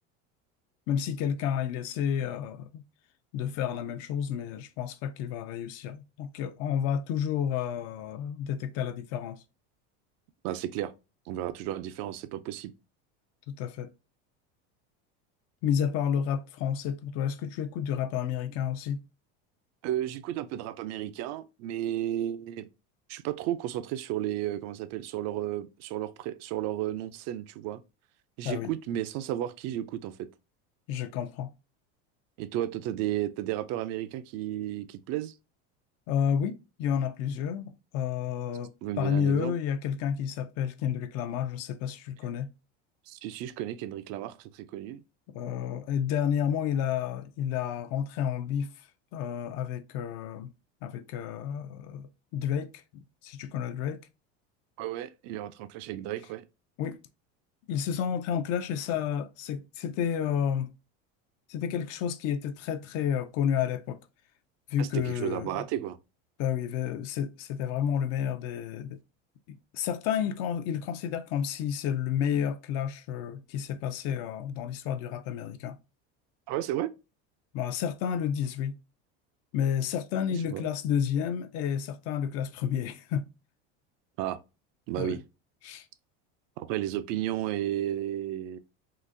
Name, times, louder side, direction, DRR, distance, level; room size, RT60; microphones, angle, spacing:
voice 1, 0.9-2.8 3.3-9.4 13.5-13.9 15.6-19.0 28.4-28.7 30.9-31.5 36.1-42.5 45.3-48.9 49.1-50.5 50.8-54.0 56.8-57.0 57.7-60.7 61.5-64.0 64.7-65.6 66.4-69.0 69.5-75.8 77.5-78.8 79.5-83.3 85.0-85.2 85.6-85.9, left 8 dB, 50° left, 0.4 m, -31 dB
voice 2, 10.4-10.9 11.3-12.7 19.8-22.7 23.1-27.8 28.4-30.3 32.4-35.3 38.8-39.5 43.1-45.0 54.8-56.4 64.8-66.0 76.5-76.9 80.5-80.7 84.2-84.4 84.9-85.2 86.6-88.6, right 12 dB, 55° right, 0.4 m, -33 dB
3.8 x 2.4 x 2.5 m
supercardioid pair, 140°, 31 cm